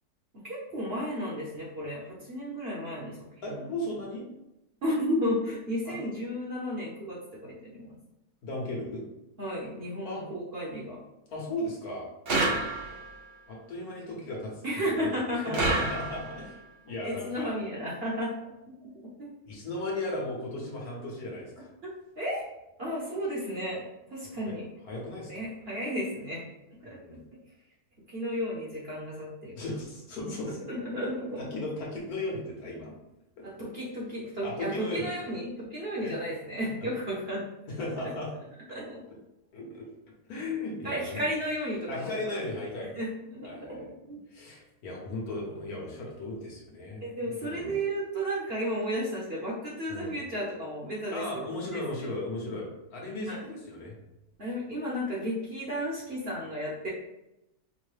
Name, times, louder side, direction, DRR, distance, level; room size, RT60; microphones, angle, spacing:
voice 1, 0.3-3.2 3.4-3.7 4.8-8.0 9.4-11.0 12.3-12.5 14.6-15.6 15.9-16.0 17.0-19.3 21.8-22.4 22.8-23.8 24.1-24.7 25.3-26.5 26.8-27.2 28.1-29.6 30.4-31.5 33.4-37.4 38.7-39.0 40.8-42.2 42.9-43.1 43.3-44.2 47.0-52.1 52.4-52.5 53.3-53.4 54.4-56.9, equal, 45° right, -5 dB, 0.9 m, -33 dB
voice 2, 3.4-4.2 5.8-6.1 8.4-9.1 10.0-10.2 11.3-12.1 13.5-16.6 16.8-17.5 19.4-21.7 24.4-24.5 24.8-25.5 26.9-27.3 29.6-30.6 31.4-32.9 33.4-33.5 34.4-35.1 36.0-36.1 36.8-36.9 37.7-38.3 39.5-39.9 40.3-41.2 41.9-43.0 43.4-43.8 44.3-47.0 47.4-47.8 49.9-50.1 51.1-53.9, left 2 dB, 70° left, -3 dB, 1.5 m, -36 dB
sound 1, 12.3-13.2 15.5-16.5, right 2 dB, 85° right, 0.5 m, -28 dB
5.2 x 2.1 x 3.2 m, 0.90 s
omnidirectional pair, 1.7 m